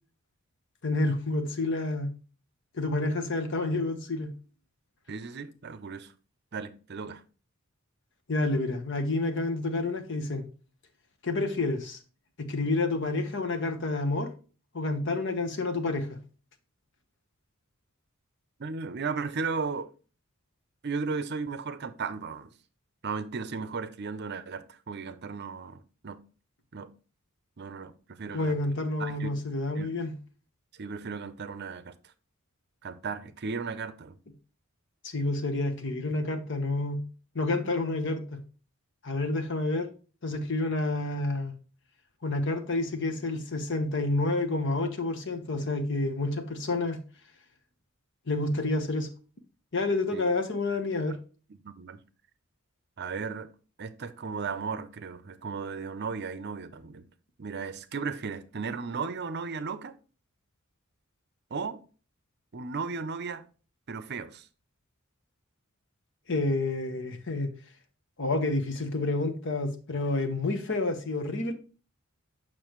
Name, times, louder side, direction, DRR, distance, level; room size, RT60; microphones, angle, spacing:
voice 1, 0.8-2.1 2.8-4.3 8.3-10.4 11.2-12.0 12.4-14.3 14.7-16.2 28.3-30.1 35.0-37.0 37.3-38.4 39.0-39.9 40.2-41.5 42.2-47.0 48.3-49.1 49.7-51.1 66.3-67.5 68.2-71.5, left 2 dB, 60° left, 1.1 m, -29 dB
voice 2, 5.1-6.1 6.5-7.2 18.6-19.9 20.8-22.5 23.0-26.2 26.7-26.9 27.6-28.6 29.0-29.3 29.8-29.9 30.7-31.9 32.8-34.2 50.1-50.2 51.5-52.0 53.0-53.5 53.8-57.0 57.4-60.0 61.5-61.8 62.5-63.5 63.9-64.5, right 5 dB, 50° right, 0.6 m, -35 dB
6.9 x 5.9 x 3.0 m
head